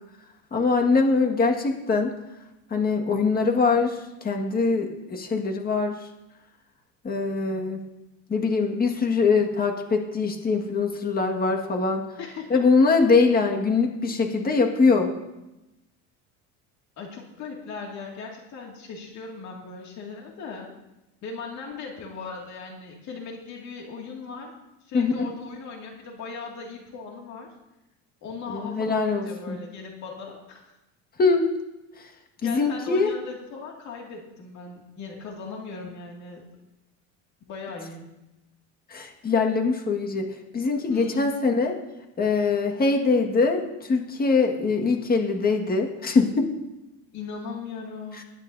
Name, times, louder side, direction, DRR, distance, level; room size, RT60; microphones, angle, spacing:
voice 1, 0.5-2.1 2.7-6.0 7.0-7.8 8.3-12.1 12.5-15.1 24.9-25.3 28.5-29.6 31.2-31.5 32.4-33.1 38.9-40.3 40.5-41.8 42.2-46.5 48.2-48.3, left 4 dB, 25° left, 3 dB, 1.8 m, -23 dB
voice 2, 12.2-12.6 17.0-20.7 21.2-24.5 24.8-27.5 28.2-30.7 32.4-36.4 37.5-38.1 40.9-41.4 47.1-48.2, left 4 dB, 50° left, 0 dB, 2.3 m, -38 dB
21.0 x 9.9 x 2.7 m, 0.95 s
cardioid pair, 135°, 37 cm